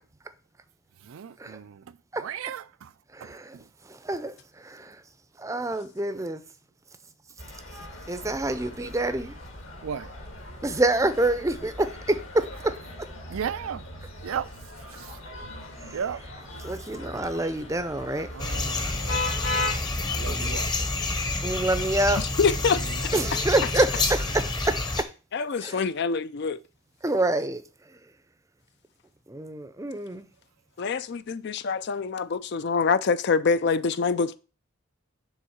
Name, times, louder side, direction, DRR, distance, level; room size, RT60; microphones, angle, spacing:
voice 1, 1.0-1.8 2.2-2.9 3.2-3.4 8.5-8.7 9.8-10.1 13.3-13.9 14.2-14.5 14.9-15.2 15.9-16.3 18.3-18.8 20.1-20.7 23.1-23.3, right 8 dB, 75° right, 0.4 m, -35 dB
voice 2, 3.2-3.5 4.0-4.3 4.6-4.9 5.4-6.4 8.1-9.3 10.6-12.7 16.6-18.3 20.2-20.6 21.4-22.2 23.1-24.8 25.6-25.8 27.0-27.6 29.3-30.3, right 2 dB, 15° right, 0.5 m, -26 dB
sound 1, 7.4-19.8, left 2 dB, 70° left, 2.1 m, -38 dB
sound 2, 18.4-25.0, left 2 dB, 20° left, 0.8 m, -28 dB
voice 3, 22.2-23.4 25.3-26.6 30.8-34.4, left 5 dB, 50° left, 0.4 m, -26 dB
7.1 x 3.7 x 6.3 m
head